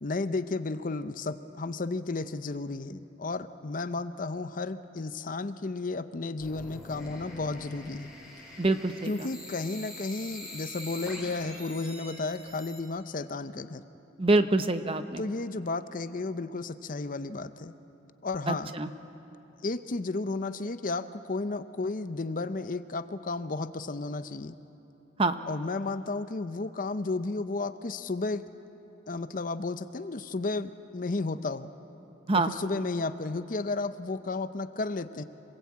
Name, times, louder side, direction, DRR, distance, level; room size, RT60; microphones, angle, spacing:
voice 1, 0.0-8.1 9.1-13.8 15.2-17.7 18.2-18.7 19.6-24.6 25.5-28.4 29.1-31.7 32.3-35.2, left 3 dB, 40° left, 12 dB, 0.6 m, -33 dB
sound 1, 6.4-12.8, left 1 dB, 5° right, 4.0 m, -44 dB
voice 2, 8.6-9.3 14.2-15.2 18.5-18.9 25.2-25.4 32.3-32.5, right 2 dB, 25° right, 9 dB, 0.8 m, -26 dB
26.5 x 19.5 x 8.5 m, 3.0 s
head